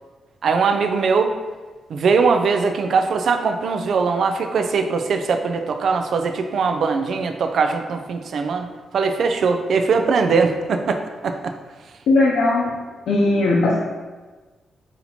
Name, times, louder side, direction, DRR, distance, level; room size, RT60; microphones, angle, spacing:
voice 1, 0.4-1.3 1.9-8.7 8.9-11.0 11.2-11.5, right 5 dB, 70° right, 6 dB, 0.3 m, -20 dB
voice 2, 12.1-12.7 13.1-13.8, left 2 dB, 80° left, -4 dB, 0.6 m, -18 dB
4.1 x 2.8 x 4.2 m, 1.3 s
cardioid pair, 65°, 0 cm